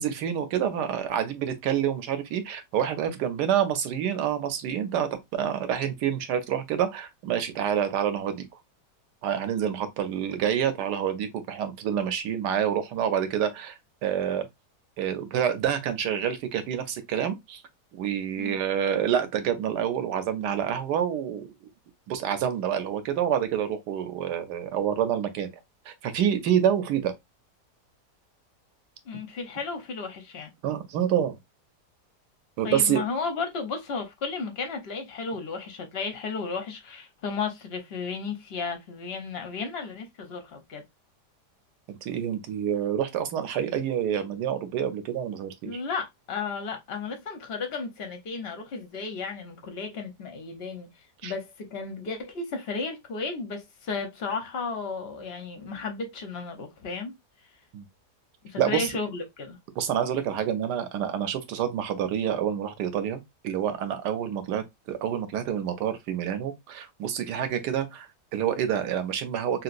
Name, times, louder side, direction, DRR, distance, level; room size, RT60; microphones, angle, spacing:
voice 1, 0.0-8.4 9.2-14.5 15.0-17.6 17.9-21.5 22.1-25.5 25.9-27.1 30.6-31.4 32.6-33.0 41.9-45.8 51.2-51.3 57.7-57.8 58.6-58.9 59.8-69.6, right 9 dB, 80° right, 1.3 m, -27 dB
voice 2, 29.1-30.5 32.6-40.9 45.6-50.9 51.2-57.2 58.4-59.6, left 4 dB, 50° left, 0.8 m, -34 dB
2.9 x 2.9 x 2.4 m
omnidirectional pair, 1.8 m